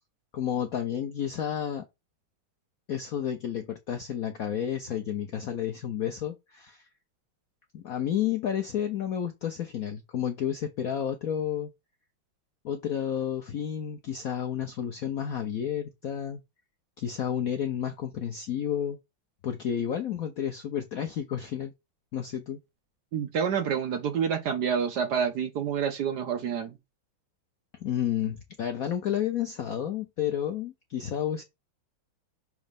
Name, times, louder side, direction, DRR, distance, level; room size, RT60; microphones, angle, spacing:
voice 1, 0.3-1.8 2.9-6.9 7.7-11.7 12.6-16.4 17.0-19.0 19.4-21.7 22.1-22.6 27.8-31.4, left 9 dB, 70° left, 0.8 m, -31 dB
voice 2, 23.1-26.8, right 7 dB, 60° right, 1.2 m, -28 dB
6.4 x 2.9 x 5.2 m
omnidirectional pair, 2.3 m